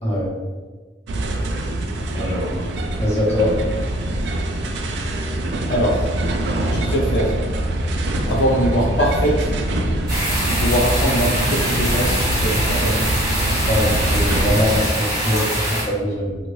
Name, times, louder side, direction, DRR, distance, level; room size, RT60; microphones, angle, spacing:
sound 1, 1.1-14.8, right 1 dB, 85° right, 0.4 m, -23 dB
voice 1, 2.1-2.6 3.0-3.5 13.4-15.4 15.9-16.4, left 1 dB, 35° left, -8 dB, 1.1 m, -22 dB
voice 2, 5.7-6.1 6.7-7.4 8.3-9.5 10.5-13.0 15.3-15.7, equal, 90° left, -1 dB, 0.5 m, -22 dB
sound 2, 10.1-15.8, right 1 dB, 25° right, 1.3 m, -23 dB
2.6 x 2.5 x 3.0 m, 1.3 s
head